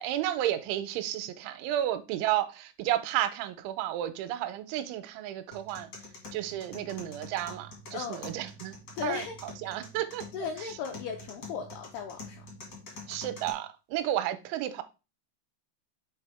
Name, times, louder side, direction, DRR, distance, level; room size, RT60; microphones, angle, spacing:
voice 1, 0.0-5.9 6.3-10.3 10.6-10.7 13.1-14.8, right 12 dB, 85° right, 2.9 m, -32 dB
sound 1, 5.5-13.5, left 2 dB, 60° left, 1.0 m, -46 dB
voice 2, 7.9-8.2 9.0-9.4 9.6-9.8 10.3-12.5, left 7 dB, 85° left, 2.3 m, -37 dB
7.2 x 3.6 x 4.8 m
omnidirectional pair, 5.4 m